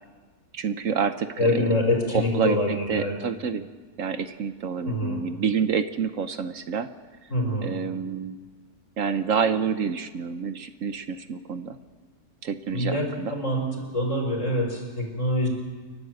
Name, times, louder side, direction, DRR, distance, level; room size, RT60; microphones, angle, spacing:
voice 1, 0.5-1.7 2.1-3.7 4.0-6.9 7.6-8.4 9.0-11.8 12.4-13.3, right 6 dB, 65° right, 10 dB, 1.2 m, -28 dB
voice 2, 1.4-3.2 4.8-5.2 7.3-7.7 12.7-13.6 13.9-15.5, left 1 dB, 55° left, 1 dB, 5.1 m, -25 dB
29.5 x 12.0 x 7.9 m, 1.4 s
omnidirectional pair, 1.6 m